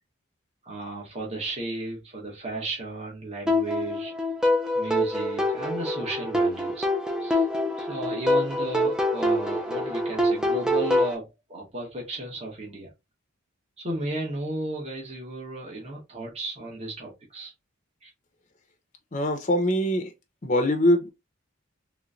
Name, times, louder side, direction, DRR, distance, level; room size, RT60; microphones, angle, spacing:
voice 1, 0.6-4.1 4.7-6.9 7.2-7.4 7.8-12.9 13.8-17.5 18.0-18.1, right 2 dB, 30° right, 1.1 m, -34 dB
sound 1, 3.5-11.1, left 1 dB, 5° right, 0.4 m, -25 dB
voice 2, 19.1-20.1 20.4-21.1, left 1 dB, 35° left, 0.6 m, -23 dB
3.2 x 3.1 x 2.5 m
head